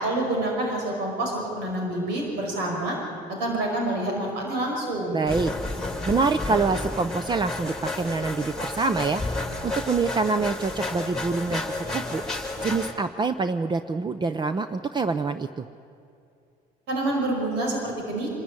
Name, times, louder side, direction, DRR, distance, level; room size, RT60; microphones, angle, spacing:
voice 1, 0.0-3.0 3.3-5.2 16.9-18.4, right 1 dB, 85° right, 0 dB, 5.5 m, -27 dB
voice 2, 5.1-5.5 6.1-9.2 9.6-15.7, right 4 dB, 25° right, 11 dB, 0.7 m, -26 dB
sound 1, 5.3-12.9, left 2 dB, 5° left, 2.9 m, -31 dB
25.5 x 14.0 x 9.8 m, 2.5 s
cardioid pair, 110°, 17 cm